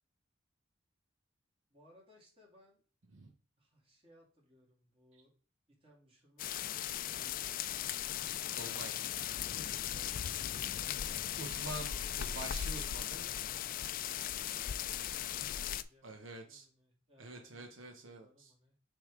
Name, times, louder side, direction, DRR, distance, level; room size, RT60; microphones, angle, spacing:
voice 1, 1.7-2.8 3.6-5.3 5.7-7.6 9.6-11.9 14.0-18.8, left 1 dB, 30° right, -2 dB, 2.5 m, -64 dB
sound 1, 6.4-15.8, left 10 dB, 45° left, 0.3 m, -38 dB
voice 2, 8.6-9.0 11.4-13.3 16.0-16.7 17.2-18.5, right 2 dB, 90° right, 4 dB, 0.9 m, -46 dB
6.5 x 3.5 x 4.8 m, 0.40 s
head